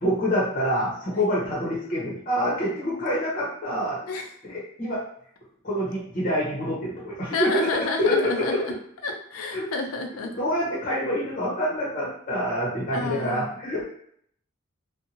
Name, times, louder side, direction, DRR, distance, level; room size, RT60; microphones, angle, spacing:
voice 1, 0.0-4.0 4.5-5.0 5.6-7.7 8.0-8.6 9.5-9.7 10.2-13.8, equal, 35° left, -5 dB, 0.9 m, -26 dB
voice 2, 7.3-8.7 9.0-10.3 12.9-13.5, left 3 dB, 85° left, 3 dB, 0.5 m, -30 dB
2.6 x 2.2 x 2.8 m, 0.65 s
head